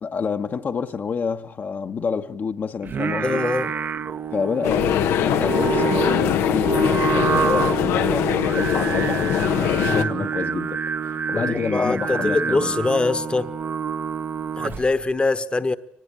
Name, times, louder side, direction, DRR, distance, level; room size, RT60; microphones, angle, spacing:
voice 1, 0.0-3.4 4.3-12.7, left 6 dB, 50° left, 1.2 m, -28 dB
Singing, 2.8-15.0, right 7 dB, 50° right, 1.0 m, -27 dB
voice 2, 3.2-3.7 9.8-10.3 11.3-13.5 14.6-15.8, left 3 dB, 25° left, 1.2 m, -23 dB
sound 1, 4.6-10.0, left 10 dB, 90° left, 1.1 m, -22 dB
24.0 x 19.5 x 9.9 m
cardioid pair, 85°, 4 cm